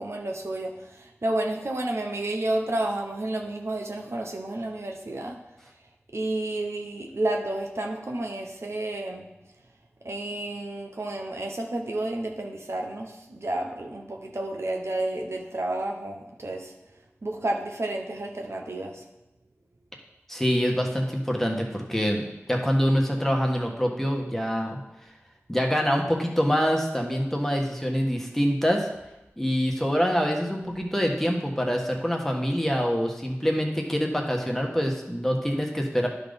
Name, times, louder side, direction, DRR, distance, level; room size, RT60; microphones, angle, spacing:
voice 1, 0.0-5.4 6.1-9.3 10.0-16.7 17.2-19.0, right 1 dB, 65° right, 1 dB, 1.0 m, -31 dB
voice 2, 20.3-24.8 25.5-28.9 29.4-36.1, equal, 5° left, 1 dB, 1.5 m, -25 dB
11.0 x 4.0 x 5.2 m, 0.95 s
wide cardioid pair, 45°, 5 cm